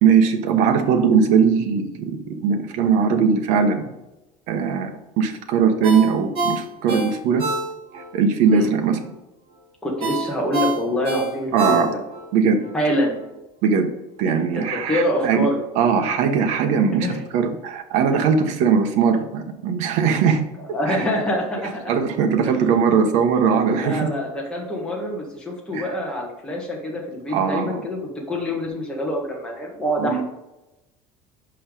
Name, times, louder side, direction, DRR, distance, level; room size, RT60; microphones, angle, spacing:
voice 1, 0.0-3.8 4.5-7.5 8.1-9.0 11.5-11.9 12.3-12.6 13.6-13.9 14.2-15.5 15.7-20.4 20.9-21.1 21.9-24.1 25.7-25.9 27.3-27.8 30.0-30.2, right 6 dB, 60° right, 6 dB, 1.1 m, -20 dB
Ringtone, 5.8-8.1 8.5-8.6 10.0-12.3 12.6-12.7, right 3 dB, 40° right, 2.0 m, -26 dB
voice 2, 9.8-11.9 12.7-13.2 14.2-15.6 17.0-17.2 20.7-21.9 22.4-22.8 23.7-28.0 28.3-30.2, equal, 5° left, -2 dB, 1.6 m, -26 dB
5.6 x 5.5 x 5.3 m, 0.96 s
cardioid pair, 160°, 14 cm